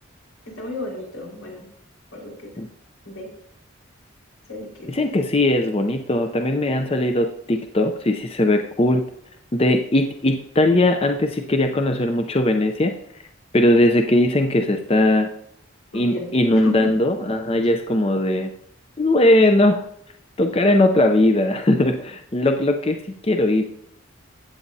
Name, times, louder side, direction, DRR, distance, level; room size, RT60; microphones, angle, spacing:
voice 1, 0.4-1.7 2.1-2.5 3.0-3.3 4.5-4.9 15.9-16.9, left 2 dB, 90° left, -2 dB, 4.6 m, -34 dB
voice 2, 4.9-9.0 9.5-12.9 13.5-15.3 15.9-18.5 19.0-19.8 20.4-23.6, left 1 dB, 25° left, 5 dB, 0.5 m, -19 dB
15.0 x 8.6 x 2.7 m, 0.68 s
head